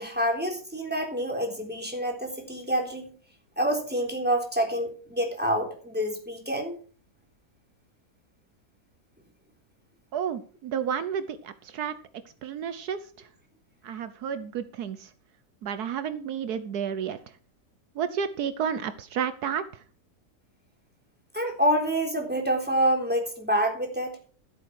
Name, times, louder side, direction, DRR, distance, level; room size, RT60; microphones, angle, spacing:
voice 1, 0.0-3.1 3.6-6.7 21.3-24.2, equal, 5° right, 1 dB, 3.5 m, -27 dB
voice 2, 10.1-11.9 12.4-13.3 13.8-15.1 15.6-17.2 17.9-19.8, right 8 dB, 75° right, 12 dB, 1.3 m, -31 dB
14.0 x 8.1 x 4.7 m, 0.42 s
omnidirectional pair, 1.7 m